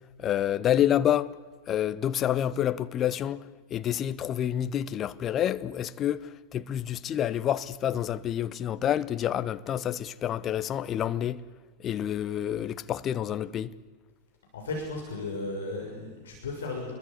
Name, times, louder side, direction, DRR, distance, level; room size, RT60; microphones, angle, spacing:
voice 1, 0.2-1.3 1.7-11.4 11.8-13.7, left 10 dB, 30° left, 1.0 m, -28 dB
voice 2, 14.5-16.9, left 2 dB, 65° left, 6.5 m, -35 dB
29.0 x 22.5 x 8.5 m
figure-of-eight pair, 90°, 0 cm